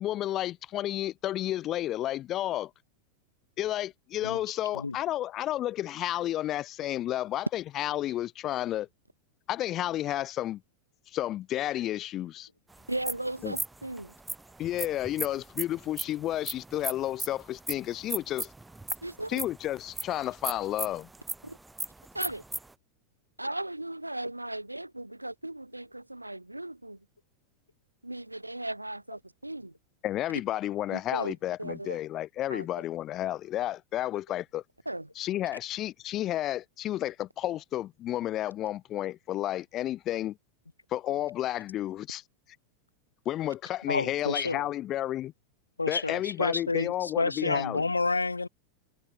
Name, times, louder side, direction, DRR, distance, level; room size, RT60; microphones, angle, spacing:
voice 1, 0.0-2.7 3.6-8.9 9.5-10.6 11.1-12.5 13.4-13.5 14.6-18.5 19.3-21.1 30.0-34.6 35.2-40.4 40.9-42.2 43.3-45.3 45.9-47.9, left 13 dB, 35° left, 0.5 m, -31 dB
sound 1, 12.7-22.7, right 2 dB, 5° right, 0.7 m, -37 dB
voice 2, 12.9-14.1 19.0-19.4 21.4-21.6 22.1-22.4 23.4-27.0 28.0-29.7 30.9-32.0 32.5-32.7 34.9-35.1, right 1 dB, 85° right, 0.6 m, -37 dB
voice 3, 43.9-44.7 45.8-48.5, left 3 dB, 80° left, 0.7 m, -29 dB
figure-of-eight pair, 90°, 0 cm